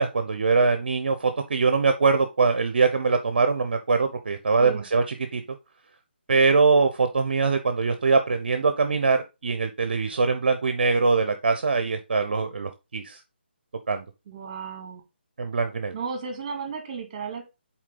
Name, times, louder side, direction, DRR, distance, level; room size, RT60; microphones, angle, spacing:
voice 1, 0.0-5.4 6.3-13.2 13.9-14.0 15.4-15.9, right 4 dB, 55° right, 9 dB, 0.8 m, -22 dB
voice 2, 14.3-15.0 15.9-17.4, right 5 dB, 30° right, 4 dB, 2.2 m, -34 dB
7.3 x 4.4 x 3.8 m, 0.26 s
figure-of-eight pair, 150°, 6 cm